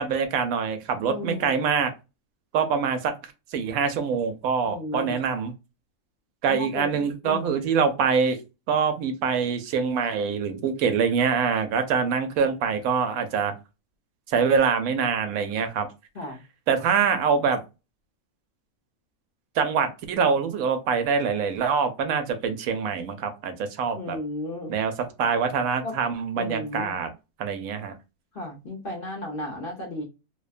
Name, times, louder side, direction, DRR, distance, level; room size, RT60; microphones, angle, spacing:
voice 1, 0.0-1.9 2.5-5.5 6.4-8.4 8.7-13.5 14.3-15.9 16.7-17.6 19.6-24.2 24.7-27.1 27.4-27.9, right 6 dB, 85° right, 1.0 m, -25 dB
voice 2, 1.1-1.5 4.7-5.2 6.5-7.6 16.1-16.4 23.9-24.7 25.8-25.9 26.4-27.0 28.3-30.0, left 1 dB, 50° left, 0.9 m, -34 dB
2.7 x 2.1 x 2.4 m
omnidirectional pair, 1.4 m